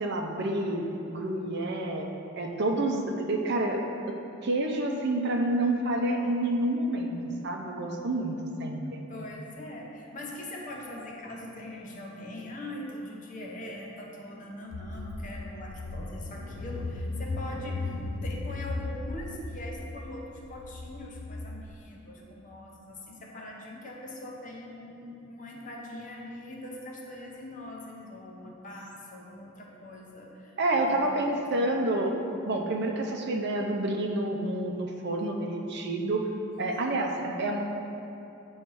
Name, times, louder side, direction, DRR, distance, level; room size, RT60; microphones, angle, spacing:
voice 1, 0.0-3.8 4.4-7.2 7.4-9.0 30.6-32.1 32.4-36.3 36.6-37.6, right 1 dB, 55° right, 2 dB, 0.6 m, -28 dB
voice 2, 9.1-17.9 18.2-31.8, left 1 dB, 40° left, -2 dB, 0.8 m, -42 dB
Car / Engine, 14.7-21.7, left 2 dB, 75° left, 0.4 m, -36 dB
8.7 x 3.2 x 4.6 m, 2.7 s
head